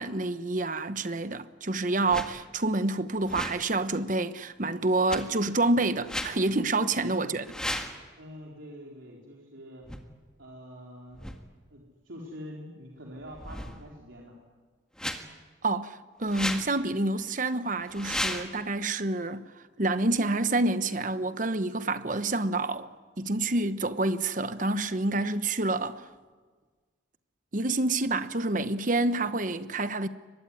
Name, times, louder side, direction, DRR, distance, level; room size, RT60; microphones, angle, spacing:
voice 1, 0.0-7.4 15.6-19.5 19.8-22.9 23.2-26.0 27.5-30.1, right 2 dB, 40° right, 1.0 m, -28 dB
sound 1, 2.0-2.3 3.2-3.6 5.1-5.2 6.0-6.3 7.4-8.0 9.8-10.0 11.1-11.4 13.2-14.0 15.0-15.2 16.2-16.7 17.8-18.4, left 1 dB, 5° left, 1.8 m, -34 dB
voice 2, 7.0-7.4 8.2-9.8 10.4-11.3 11.7-14.4, equal, 75° right, 4.0 m, -45 dB
23.5 x 21.5 x 9.8 m
head